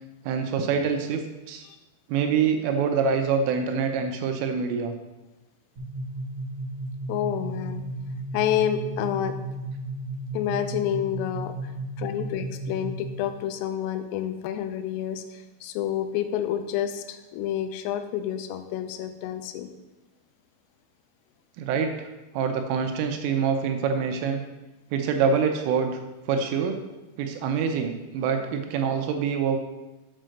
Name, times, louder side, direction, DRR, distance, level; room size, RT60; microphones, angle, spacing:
voice 1, 0.3-1.2 1.5-1.6 2.1-4.9 21.6-22.1 22.3-24.4 24.9-25.9 26.3-26.8 27.2-29.6, right 6 dB, 80° right, 5 dB, 3.2 m, -25 dB
sound 1, 5.8-13.3, right 2 dB, 40° right, 3.3 m, -34 dB
voice 2, 7.1-7.9 8.3-9.4 10.3-11.7 12.0-19.7, left 10 dB, 85° left, 8 dB, 3.3 m, -29 dB
7.8 x 5.5 x 6.4 m, 1.1 s
omnidirectional pair, 5.9 m